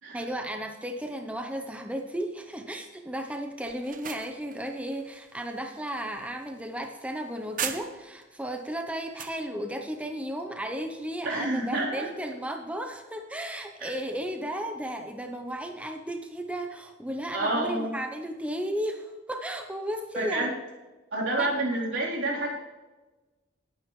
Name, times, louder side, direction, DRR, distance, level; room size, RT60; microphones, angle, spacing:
voice 1, 0.1-20.5 21.4-21.5, equal, 5° right, 4 dB, 0.7 m, -34 dB
sound 1, 3.7-8.2 8.6-9.4, right 8 dB, 45° right, 0.8 m, -39 dB
voice 2, 11.2-12.1 13.8-13.9 17.3-17.9 20.1-20.5 21.1-22.5, right 2 dB, 85° right, -4 dB, 3.6 m, -28 dB
19.0 x 9.2 x 3.2 m, 1.2 s
head